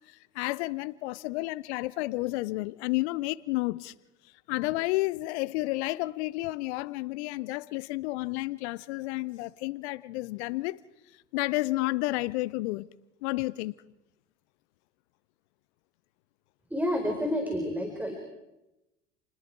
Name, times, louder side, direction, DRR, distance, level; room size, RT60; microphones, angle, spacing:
voice 1, 0.1-3.9 4.5-10.8 11.3-12.9 13.2-13.7, left 20 dB, 65° left, 0.7 m, -31 dB
voice 2, 16.7-18.1, equal, 5° right, 4.3 m, -29 dB
29.5 x 20.5 x 4.7 m
hypercardioid pair, 65°, 35 cm